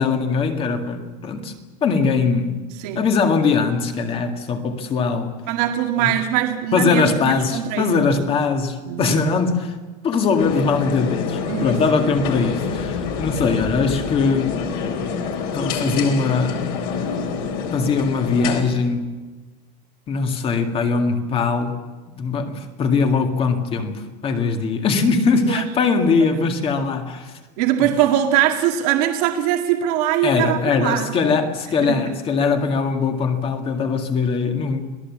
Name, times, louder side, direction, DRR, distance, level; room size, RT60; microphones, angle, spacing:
voice 1, 0.0-1.5 1.8-2.6 3.0-5.4 6.0-6.1 6.7-9.8 10.0-14.6 15.5-16.6 17.7-19.2 20.1-21.8 22.2-27.3 27.8-27.9 30.2-34.8, left 4 dB, 25° left, 2.0 m, -21 dB
voice 2, 5.5-8.1 8.9-9.2 11.5-11.8 25.5-25.6 26.0-26.1 26.3-26.4 27.6-31.4 31.8-32.1, right 10 dB, 65° right, 2.1 m, -22 dB
sound 1, 10.4-18.6, left 6 dB, 50° left, 3.9 m, -27 dB
26.5 x 18.0 x 7.4 m
cardioid pair, 165°, 21 cm